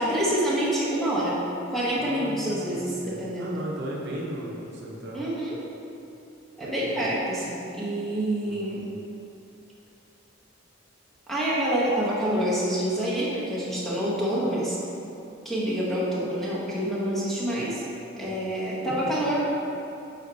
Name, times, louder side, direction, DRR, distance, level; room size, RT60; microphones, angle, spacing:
voice 1, 0.0-1.4 1.7-3.5 5.1-5.6 6.6-8.8 11.3-14.8 15.4-17.8 18.2-19.4, right 1 dB, ahead, -8 dB, 0.9 m, -27 dB
voice 2, 2.0-5.3 6.6-7.2 8.4-8.9 18.9-19.0, right 1 dB, 55° right, -4 dB, 0.8 m, -37 dB
8.0 x 4.3 x 2.7 m, 2.8 s
head